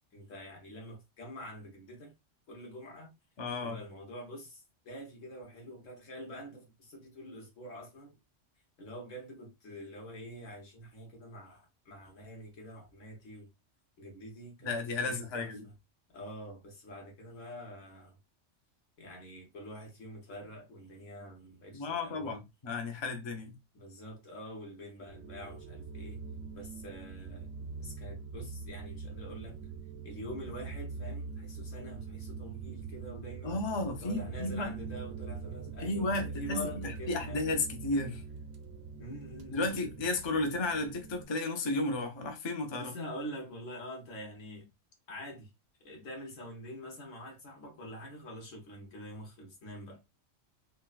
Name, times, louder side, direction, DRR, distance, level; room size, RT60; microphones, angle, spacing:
voice 1, 0.1-2.1 2.5-3.1 3.6-8.1 8.8-13.5 14.0-14.7 15.0-15.5 16.1-18.2 19.0-22.4 23.7-26.2 26.5-27.5 27.8-29.6 30.0-33.6 34.0-37.5 39.0-40.0 42.7-44.7 45.1-45.5 45.8-50.0, equal, 85° left, 1.5 m, -46 dB
voice 2, 3.4-3.8 14.6-15.6 21.7-23.5 33.4-34.7 35.8-38.2 39.5-42.9, left 2 dB, 35° left, 0.5 m, -33 dB
sound 1, 25.0-41.2, right 5 dB, 75° right, 0.9 m, -43 dB
3.9 x 2.2 x 2.3 m
omnidirectional pair, 1.3 m